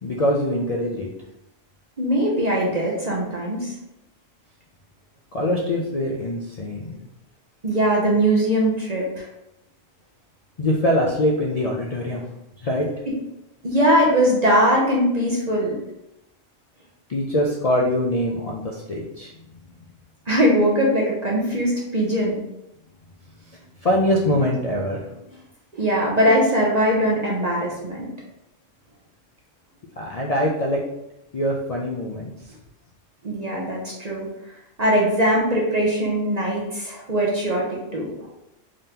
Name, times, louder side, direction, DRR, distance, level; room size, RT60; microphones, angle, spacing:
voice 1, 0.0-1.1 5.3-7.0 10.6-12.3 12.6-12.9 17.1-19.3 23.5-25.2 30.0-30.8 31.3-32.3, left 1 dB, 75° left, -2 dB, 0.3 m, -23 dB
voice 2, 2.0-3.7 7.6-9.3 13.1-13.2 13.6-15.8 20.3-22.4 25.7-28.1 33.2-34.3 34.8-38.3, equal, 40° right, -3 dB, 0.7 m, -21 dB
3.7 x 3.6 x 2.8 m, 0.87 s
omnidirectional pair, 1.3 m